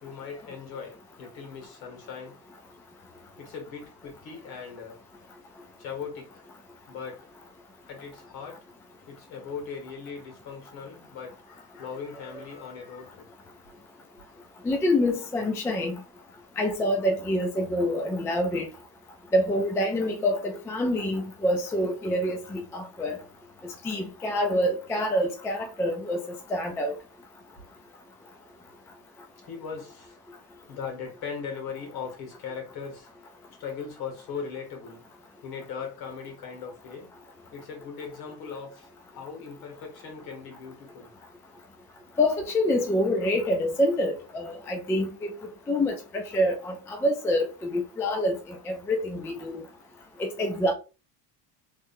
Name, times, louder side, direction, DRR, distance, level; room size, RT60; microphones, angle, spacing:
voice 1, 0.0-2.4 3.4-5.0 5.8-6.4 6.9-7.3 7.9-8.6 9.1-13.3 29.4-30.2 30.7-33.1 33.6-35.1 35.4-37.1 37.5-41.1, left 6 dB, 60° left, 1.9 m, -39 dB
voice 2, 14.6-15.9 16.6-18.7 19.3-23.2 23.6-26.2 26.5-26.9 42.2-45.3 45.7-48.4 48.7-49.6 50.2-50.7, left 1 dB, 5° left, 0.3 m, -26 dB
3.8 x 3.2 x 2.6 m
cardioid pair, 150°, 43 cm